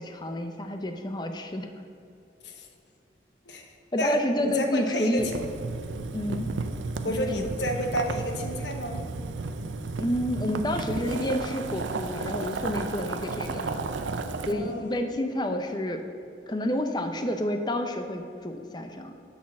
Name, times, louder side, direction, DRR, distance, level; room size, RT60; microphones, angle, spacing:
voice 1, 0.0-1.7 3.9-5.3 6.1-6.5 7.1-7.5 10.0-13.8 14.5-16.0 16.5-19.1, left 1 dB, 25° left, 6 dB, 0.5 m, -29 dB
voice 2, 4.0-5.4 7.0-9.0 14.5-15.0, equal, 70° left, 4 dB, 1.0 m, -31 dB
Boiling, 5.2-14.5, right 3 dB, 85° right, 0.5 m, -33 dB
8.5 x 4.3 x 7.0 m, 2.6 s
head